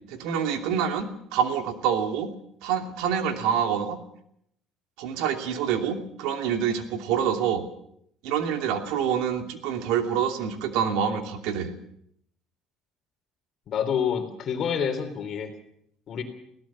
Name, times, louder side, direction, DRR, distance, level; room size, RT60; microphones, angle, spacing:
voice 1, 0.1-2.3 2.6-4.0 5.0-7.6 8.2-11.7, right 8 dB, 80° right, 6 dB, 2.8 m, -26 dB
voice 2, 13.7-15.5 16.1-16.2, left 7 dB, 40° left, 7 dB, 3.4 m, -27 dB
22.0 x 17.0 x 7.4 m, 0.72 s
cardioid pair, 160°, 0 cm